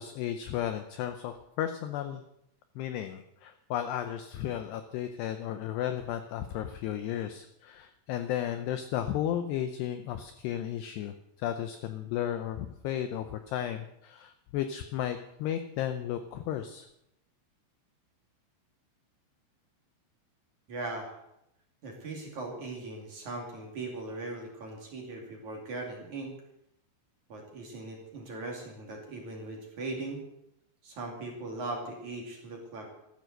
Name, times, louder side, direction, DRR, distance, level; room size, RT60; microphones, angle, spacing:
voice 1, 0.0-2.2 2.8-16.9, left 10 dB, 90° left, 8 dB, 2.3 m, -34 dB
voice 2, 20.7-21.1 21.8-26.3 27.3-30.2 30.8-32.9, right 2 dB, 45° right, 0 dB, 3.2 m, -39 dB
14.0 x 13.0 x 6.5 m, 0.81 s
omnidirectional pair, 5.8 m